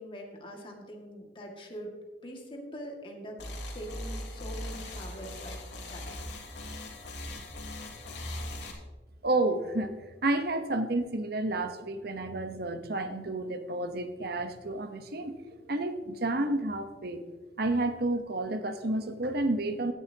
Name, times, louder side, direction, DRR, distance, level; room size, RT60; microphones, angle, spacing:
voice 1, 0.0-1.9 2.2-3.4 3.7-5.6 5.9-6.1, equal, 30° left, 0 dB, 2.1 m, -43 dB
sound 1, 3.4-8.7, left 1 dB, 70° left, 3.0 m, -39 dB
voice 2, 9.2-9.9 10.2-15.3 15.7-17.2 17.6-19.9, right 2 dB, 60° right, 8 dB, 1.1 m, -30 dB
16.5 x 10.5 x 2.9 m, 1.3 s
head